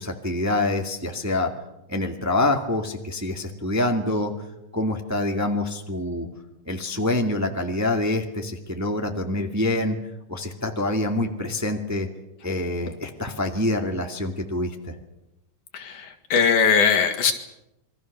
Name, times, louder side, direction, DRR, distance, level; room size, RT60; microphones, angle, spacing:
voice 1, 0.0-1.5 1.9-4.3 4.7-6.3 6.7-10.0 10.3-12.1 12.4-14.9, left 2 dB, 5° right, 3 dB, 1.6 m, -26 dB
voice 2, 15.7-17.3, left 6 dB, 80° left, 5 dB, 3.8 m, -20 dB
27.5 x 23.0 x 6.7 m, 0.88 s
omnidirectional pair, 3.5 m